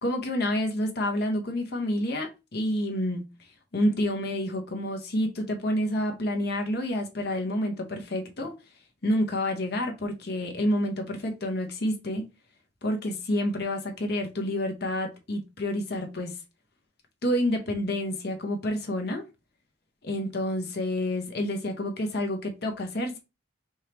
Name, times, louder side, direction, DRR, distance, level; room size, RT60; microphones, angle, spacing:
voice 1, 0.0-3.2 3.7-8.5 9.0-12.3 12.8-16.4 17.2-19.2 20.0-23.2, left 1 dB, 55° left, 0.9 m, -28 dB
4.6 x 2.9 x 3.3 m
head